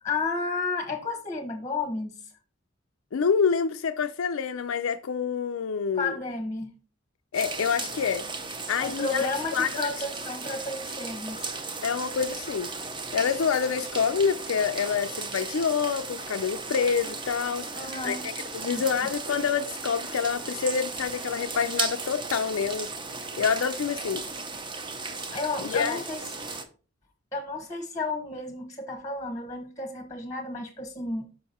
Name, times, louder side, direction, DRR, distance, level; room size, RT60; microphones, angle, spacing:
voice 1, 0.0-2.2 5.9-6.7 8.8-11.5 17.8-18.3 18.6-18.8 25.3-26.5 27.3-31.3, left 3 dB, 15° left, 0.9 m, -32 dB
voice 2, 3.1-6.2 7.3-8.2 8.7-9.7 11.8-12.7 13.1-22.9 23.4-24.2 25.6-26.0, left 6 dB, 85° left, 0.5 m, -27 dB
sound 1, 7.3-26.6, right 4 dB, 25° right, 0.7 m, -36 dB
6.5 x 5.6 x 4.2 m
head